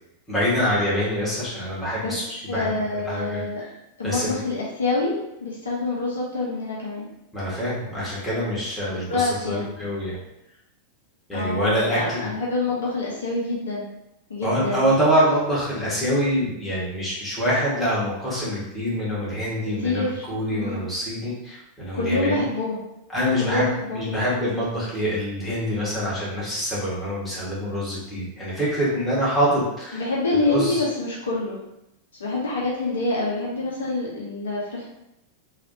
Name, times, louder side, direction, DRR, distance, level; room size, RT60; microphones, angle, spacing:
voice 1, 0.3-3.4 4.0-4.4 7.3-10.2 11.3-12.3 14.4-22.4 23.1-30.0 30.5-30.8, equal, 5° left, -9 dB, 1.4 m, -25 dB
voice 2, 2.5-3.6 4.0-7.1 8.9-9.7 11.3-13.9 14.3-14.9 19.8-20.8 21.9-22.8 23.4-24.2 29.9-31.6 32.2-34.9, left 2 dB, 65° left, -4 dB, 0.6 m, -26 dB
3.3 x 2.3 x 2.6 m, 0.86 s
figure-of-eight pair, 90°, 0 cm